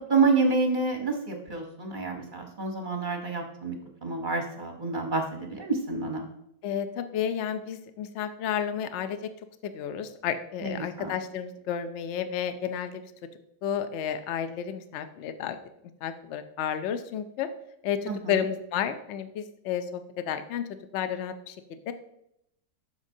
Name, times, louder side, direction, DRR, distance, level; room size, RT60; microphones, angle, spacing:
voice 1, 0.1-3.8 4.0-6.3 10.6-11.1 18.1-18.3, right 4 dB, 40° right, 3 dB, 0.7 m, -28 dB
voice 2, 6.6-9.2 9.6-13.1 13.6-15.6 16.0-17.5 17.8-20.6 20.9-21.6 21.9-22.0, left 8 dB, 85° left, 9 dB, 0.6 m, -31 dB
12.5 x 5.2 x 2.7 m, 0.79 s
omnidirectional pair, 1.9 m